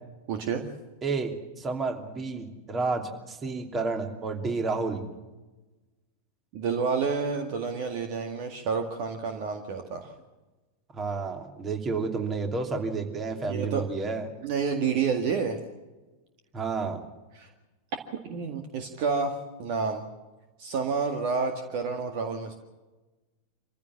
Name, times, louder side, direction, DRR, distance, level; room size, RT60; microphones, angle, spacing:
voice 1, 0.3-0.6 6.5-10.1 13.5-13.8 14.4-15.6 17.4-17.5 18.2-20.1 20.6-22.6, right 5 dB, 45° right, 5 dB, 1.9 m, -29 dB
voice 2, 1.0-5.0 10.9-14.3 16.5-17.0, right 4 dB, 20° right, 4 dB, 2.9 m, -30 dB
26.0 x 15.5 x 7.3 m, 1.2 s
figure-of-eight pair, 90°, 0 cm